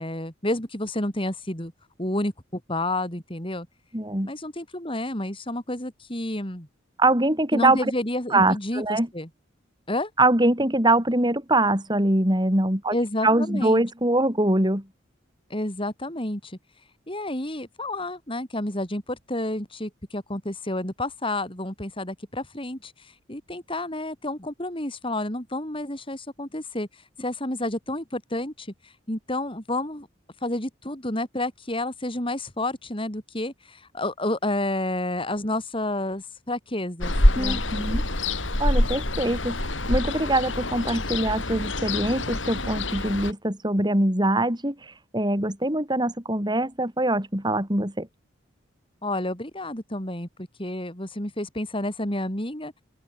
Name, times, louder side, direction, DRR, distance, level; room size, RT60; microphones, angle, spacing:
voice 1, 0.0-1.7 2.0-3.7 4.2-6.7 7.5-9.3 9.9-10.1 12.9-13.8 15.5-16.6 17.1-26.9 27.2-30.1 30.4-37.6 49.0-52.7, left 1 dB, 25° left, 5.3 m, -30 dB
voice 2, 3.9-4.3 7.0-7.9 8.3-9.1 10.2-12.9 13.2-14.8 37.4-38.0 38.6-39.6 39.9-48.1, right 1 dB, 20° right, 5.4 m, -23 dB
Ocean, 37.0-43.3, left 1 dB, 80° left, 6.1 m, -25 dB
open air
head